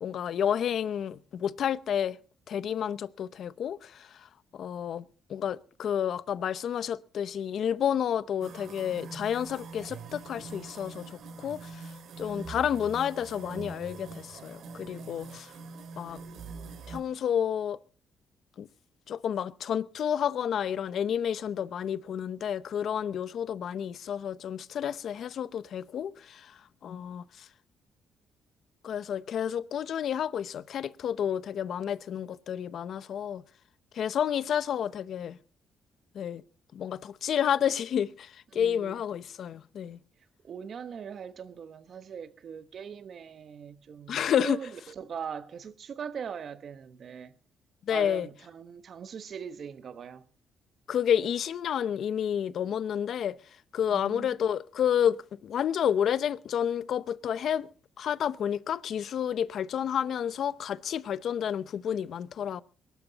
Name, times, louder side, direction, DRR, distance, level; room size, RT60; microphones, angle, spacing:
voice 1, 0.0-2.2 2.5-4.1 4.5-5.0 5.3-11.8 12.2-15.5 16.0-16.2 16.9-17.8 18.6-18.7 19.1-26.5 26.8-27.2 28.8-33.4 33.9-35.4 36.1-36.4 36.7-40.0 44.1-44.6 47.9-48.3 50.9-53.4 53.7-57.7 58.0-62.6, left 9 dB, 65° left, 0.7 m, -30 dB
sound 1, 8.4-17.0, right 4 dB, 70° right, 2.4 m, -43 dB
voice 2, 38.5-39.0 40.4-47.3 47.9-50.2 53.9-54.4, right 7 dB, 55° right, 1.2 m, -41 dB
22.0 x 12.0 x 4.0 m
cardioid pair, 90°, 0 cm